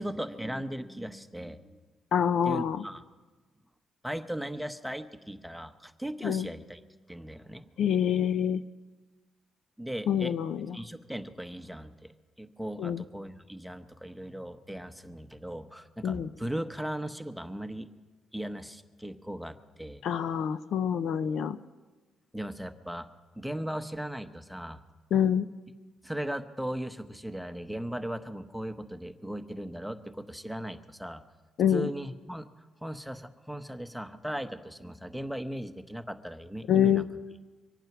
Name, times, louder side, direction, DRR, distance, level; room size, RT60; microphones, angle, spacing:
voice 1, 0.0-1.8 2.4-3.0 4.0-6.8 7.1-7.7 9.8-10.3 10.7-12.1 12.4-17.9 18.3-20.0 22.3-23.1 23.4-24.8 26.0-31.2 31.7-32.5 32.8-37.0, right 1 dB, ahead, 8 dB, 0.9 m, -37 dB
voice 2, 2.1-2.8 6.2-6.5 7.8-8.6 10.1-10.8 12.8-13.0 16.0-16.3 20.0-21.6 25.1-25.5 31.6-31.9 36.7-37.1, left 9 dB, 70° left, 12 dB, 0.6 m, -26 dB
24.0 x 9.0 x 6.0 m, 1.3 s
cardioid pair, 90°, 0 cm